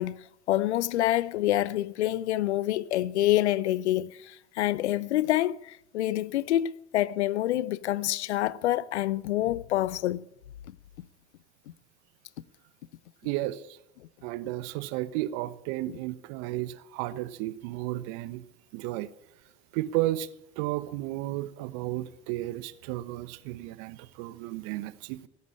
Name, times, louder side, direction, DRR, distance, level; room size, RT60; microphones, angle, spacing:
voice 1, 0.0-10.3 10.7-11.1 15.9-16.0, left 14 dB, 90° left, 0.5 m, -27 dB
voice 2, 13.2-13.6 14.2-18.4 18.7-19.1 19.7-20.3 20.6-25.3, right 16 dB, 75° right, 1.0 m, -33 dB
16.5 x 8.6 x 8.6 m
hypercardioid pair, 55°, 33 cm